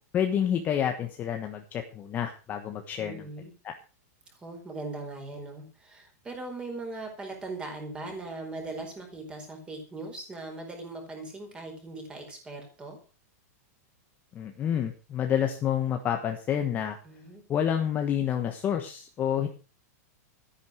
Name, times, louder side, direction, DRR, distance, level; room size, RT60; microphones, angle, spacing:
voice 1, 0.1-3.2 3.6-3.7 14.3-17.0 17.5-19.5, left 9 dB, 20° left, 5 dB, 1.3 m, -28 dB
voice 2, 3.0-3.5 4.3-13.0 17.0-17.4, right 2 dB, 10° right, 3 dB, 4.5 m, -40 dB
13.5 x 10.5 x 6.4 m, 0.35 s
supercardioid pair, 170°, 9 cm